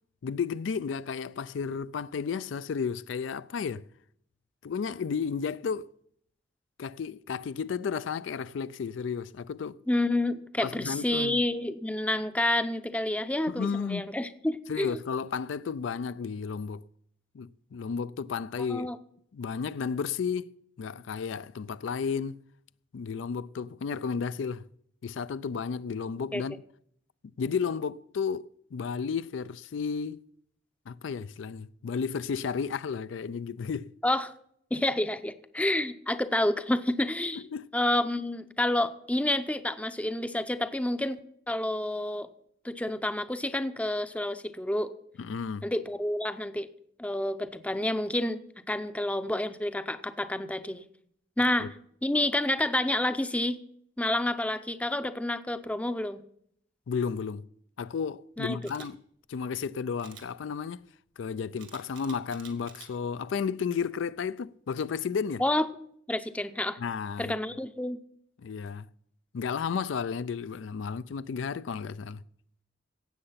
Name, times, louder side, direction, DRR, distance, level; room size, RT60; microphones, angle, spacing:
voice 1, 0.2-3.8 4.6-5.9 6.8-9.8 10.6-11.4 13.5-14.0 14.7-16.8 17.3-18.9 19.3-20.5 20.8-22.4 22.9-24.7 25.0-26.6 27.4-30.2 30.9-33.9 37.4-37.7 45.2-45.7 51.6-51.7 56.9-57.4 57.8-59.0 59.3-60.8 61.2-65.4 66.8-67.4 68.4-68.9 69.3-72.2, left 6 dB, 75° left, 0.4 m, -33 dB
voice 2, 9.9-15.0 18.7-19.0 26.3-26.4 34.0-34.3 34.7-37.4 37.7-41.2 41.5-42.3 42.6-44.9 45.6-46.7 47.0-48.4 48.7-50.8 51.4-51.7 52.0-53.6 54.0-56.2 58.4-58.6 65.4-65.7 66.1-66.8 67.2-68.0, left 1 dB, 5° left, 0.6 m, -29 dB
Camera, 58.6-58.9 60.0-60.3 61.6-62.9 63.4-63.6, right 7 dB, 75° right, 1.8 m, -49 dB
16.5 x 7.9 x 5.7 m
head